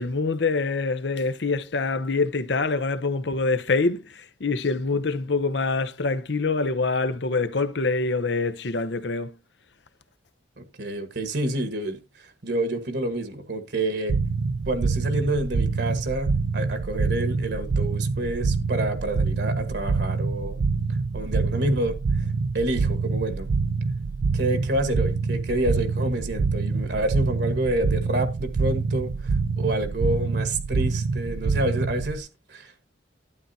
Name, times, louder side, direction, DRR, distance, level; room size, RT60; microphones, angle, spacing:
voice 1, 0.0-9.3, left 3 dB, 65° left, 0.8 m, -25 dB
voice 2, 10.6-14.1 14.7-20.6 21.1-23.5 24.3-32.9, right 1 dB, 60° right, 1.4 m, -28 dB
sound 1, 14.1-32.2, right 4 dB, 85° right, 0.5 m, -26 dB
12.0 x 8.9 x 2.7 m
head